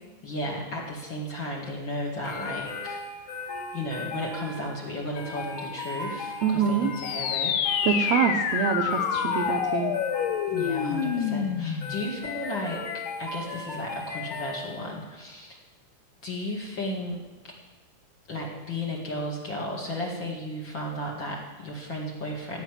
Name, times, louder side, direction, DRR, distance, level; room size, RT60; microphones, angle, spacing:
voice 1, 0.2-3.0 3.3-3.4 3.7-7.5 7.9-8.2 10.5-15.6 16.2-17.2 17.4-17.5 18.3-22.6, left 1 dB, 40° left, -2 dB, 2.2 m, -34 dB
sound 1, 2.2-15.0, left 3 dB, 55° left, 5.7 m, -37 dB
voice 2, 6.4-6.9 7.8-9.9, right 7 dB, 75° right, 4 dB, 1.6 m, -25 dB
sound 2, 7.0-12.0, left 8 dB, 75° left, 2.4 m, -27 dB
16.5 x 5.9 x 9.2 m, 1.2 s
omnidirectional pair, 4.2 m